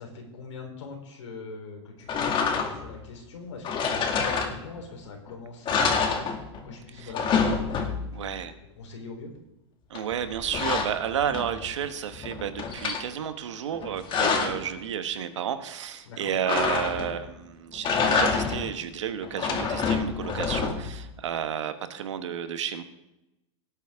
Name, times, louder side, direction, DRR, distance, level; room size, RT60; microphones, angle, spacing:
voice 1, 0.0-8.4 8.8-9.3 16.0-16.3, left 3 dB, 90° left, 2 dB, 3.6 m, -42 dB
sound 1, 2.1-3.0 3.6-4.9 5.3-5.4 5.6-6.7 7.0-8.2 9.9-11.7 12.1-13.0 13.7-14.7 16.5-17.3 17.7-18.7 19.2-21.0, left 5 dB, 35° left, 2.1 m, -27 dB
voice 2, 8.1-8.5 9.9-22.8, right 9 dB, 85° right, 9 dB, 1.3 m, -31 dB
18.0 x 8.5 x 3.6 m, 0.93 s
hypercardioid pair, 115°, 15 cm